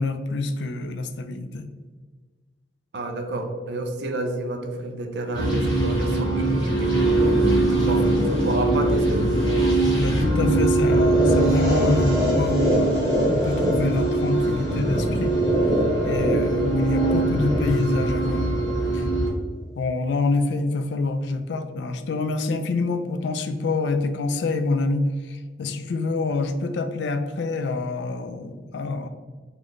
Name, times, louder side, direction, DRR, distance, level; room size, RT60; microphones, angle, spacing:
voice 1, 0.0-1.8 7.7-8.1 10.0-15.4 16.0-18.5 18.9-19.1 19.7-29.1, left 3 dB, 75° left, 8 dB, 0.3 m, -27 dB
voice 2, 2.9-7.0 7.7-8.1 8.4-9.3, right 2 dB, 65° right, 4 dB, 0.5 m, -29 dB
sound 1, 5.3-19.3, right 2 dB, 25° left, 1.0 m, -22 dB
sound 2, 10.9-18.9, equal, 20° right, 0.8 m, -26 dB
3.1 x 2.0 x 3.8 m, 1.4 s
head